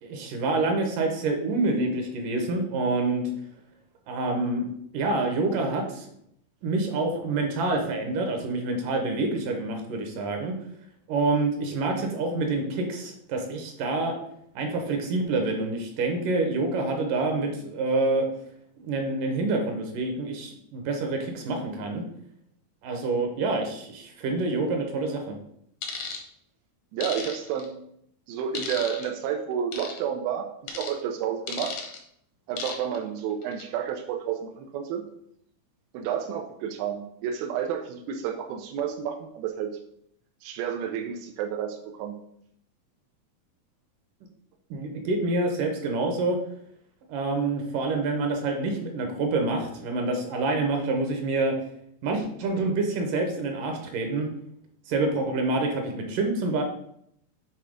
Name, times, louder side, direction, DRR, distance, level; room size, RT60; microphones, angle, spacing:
voice 1, 0.0-3.2 4.1-4.7 4.9-6.1 6.6-10.5 11.1-14.2 14.6-18.2 18.8-22.0 22.8-25.4 44.7-46.4 47.1-51.5 52.0-54.3 54.9-56.6, right 3 dB, 70° right, 3 dB, 2.3 m, -27 dB
sound 1, 25.8-26.2 27.0-27.7 28.6-29.1 29.7-30.0 30.7-30.9 31.5-32.0 32.6-33.0 33.4-33.6, left 6 dB, 70° left, 1.5 m, -34 dB
voice 2, 26.9-27.8 28.3-31.7 32.5-35.1 35.9-39.7 40.4-42.2, right 8 dB, 90° right, 4 dB, 2.5 m, -30 dB
7.6 x 3.3 x 4.9 m, 0.71 s
omnidirectional pair, 4.2 m